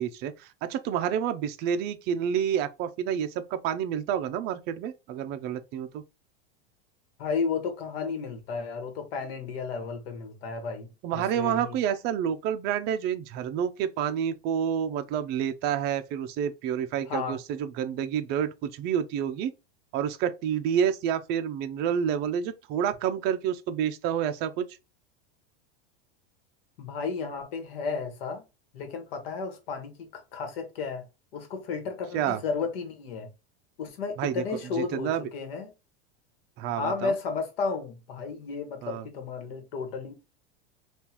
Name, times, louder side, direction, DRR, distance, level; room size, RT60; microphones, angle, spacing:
voice 1, 0.0-6.0 11.0-19.5 19.9-24.7 32.1-32.4 34.2-34.4 34.8-35.3 36.6-37.1 38.8-39.0, right 9 dB, 35° right, 0.4 m, -29 dB
voice 2, 7.2-11.7 17.1-17.4 26.8-28.4 28.7-31.0 31.3-33.3 33.8-35.7 36.8-40.1, left 5 dB, 70° left, 1.3 m, -33 dB
3.7 x 2.4 x 2.8 m
supercardioid pair, 150°, 30 cm